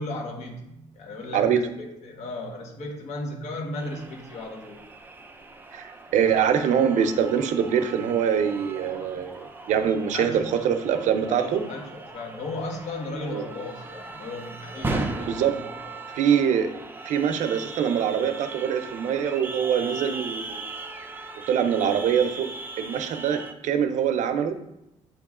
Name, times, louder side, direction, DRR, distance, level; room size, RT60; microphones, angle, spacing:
voice 1, 0.0-1.6 2.0-4.8 10.1-10.6 11.3-16.1, left 2 dB, 65° left, 0 dB, 1.5 m, -35 dB
sound 1, 3.7-23.5, right 3 dB, 15° right, 0.5 m, -38 dB
voice 2, 5.7-11.6 13.3-13.4 15.3-15.5 16.1-16.8 17.1-20.7 21.5-22.5 22.8-24.6, right 8 dB, 70° right, 8 dB, 0.6 m, -24 dB
sound 2, 6.7-7.9 8.3-11.1 11.5-14.3 14.7-16.3, equal, ahead, 1.5 m, -48 dB
8.8 x 3.0 x 3.7 m, 0.84 s
cardioid pair, 140°, 13 cm